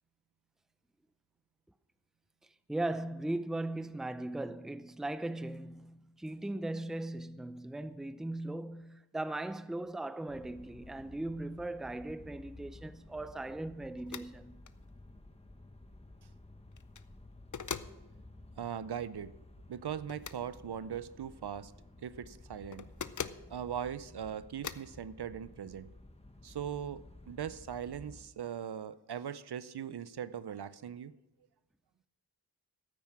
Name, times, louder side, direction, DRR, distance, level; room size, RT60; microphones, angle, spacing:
voice 1, 2.7-14.5, right 2 dB, ahead, 0.5 m, -38 dB
sound 1, 10.3-28.2, left 2 dB, 15° left, 1.1 m, -54 dB
sound 2, 14.1-14.3 14.7-14.8 16.7-17.1 17.5-18.0 20.1-20.4 22.7-23.5 24.6-24.9, left 6 dB, 50° left, 0.6 m, -40 dB
voice 2, 18.6-19.3 19.7-21.7 22.0-22.9 23.5-25.9 26.4-31.1, right 8 dB, 75° right, 0.6 m, -40 dB
13.5 x 9.3 x 6.1 m
wide cardioid pair, 70°, 39 cm